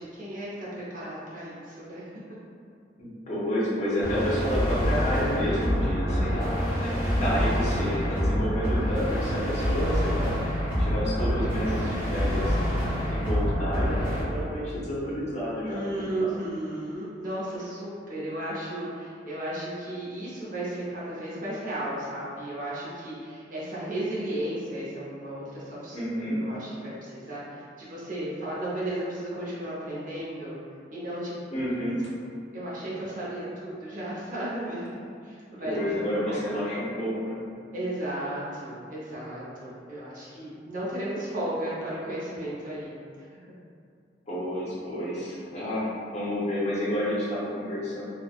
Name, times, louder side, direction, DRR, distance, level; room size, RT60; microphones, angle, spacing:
voice 1, 0.0-2.1 6.1-6.6 15.6-26.0 26.4-30.6 30.9-31.3 31.7-31.8 32.5-35.0 35.2-36.0 36.3-36.5 37.7-43.3, right 1 dB, 45° right, -8 dB, 0.7 m, -34 dB
voice 2, 3.0-6.9 7.1-10.3 10.8-12.6 13.1-16.3 25.9-26.4 31.5-32.0 35.6-37.4 44.3-48.0, equal, 35° left, -8 dB, 0.6 m, -30 dB
sound 1, 4.0-14.2, equal, 10° right, 0.7 m, -26 dB
3.3 x 2.1 x 2.3 m, 2.3 s
head